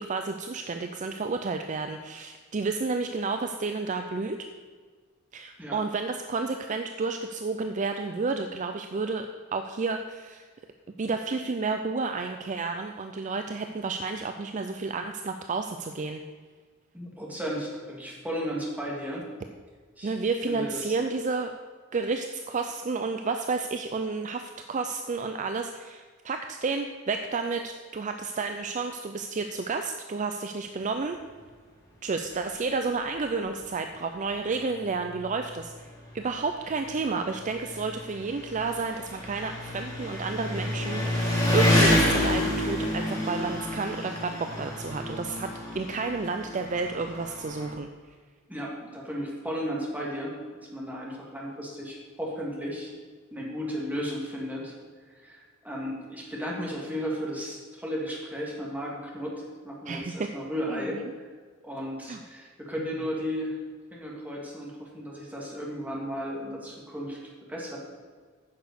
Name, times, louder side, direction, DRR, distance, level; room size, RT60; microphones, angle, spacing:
voice 1, 0.0-4.5 5.3-10.5 11.0-16.2 20.0-21.5 21.9-31.2 32.0-35.9 36.1-45.5 45.7-47.9 59.9-60.1 60.7-61.0 62.1-62.2, right 4 dB, 35° right, 6 dB, 0.4 m, -31 dB
voice 2, 16.9-19.3 20.0-20.2 20.5-21.0 48.5-50.4 50.7-52.9 53.3-54.8 55.1-61.0 61.6-63.6 63.9-67.2 67.5-67.8, equal, 10° right, -3 dB, 2.1 m, -34 dB
Engine, 33.1-33.2 33.6-33.7 34.7-34.8 35.0-47.7, left 1 dB, 20° left, 3.0 m, -29 dB
9.5 x 6.2 x 6.7 m, 1.5 s
head